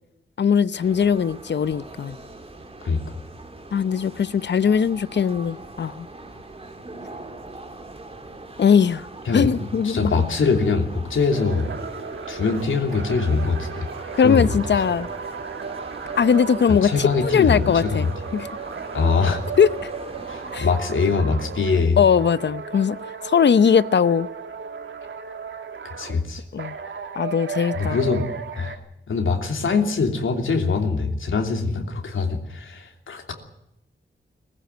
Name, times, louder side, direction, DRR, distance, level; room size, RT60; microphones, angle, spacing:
voice 1, 0.4-2.2 3.7-6.1 8.6-9.1 9.3-10.1 14.1-15.1 16.2-18.5 19.6-19.7 20.5-20.7 22.0-24.3 26.5-26.7 27.2-28.0, left 7 dB, 60° left, 0.7 m, -20 dB
sound 1, 0.8-20.6, right 2 dB, 30° right, 2.5 m, -41 dB
voice 2, 9.8-11.7 12.3-13.9 14.2-14.5 16.7-18.0 18.9-19.5 20.3-22.0 25.8-26.4 27.7-28.3 28.6-28.7 29.1-33.3, left 4 dB, 80° left, 3.0 m, -23 dB
sound 2, 11.3-21.9 22.1-26.2 26.6-28.8, right 5 dB, 70° right, 2.1 m, -35 dB
21.0 x 15.5 x 9.4 m
wide cardioid pair, 145°, 20 cm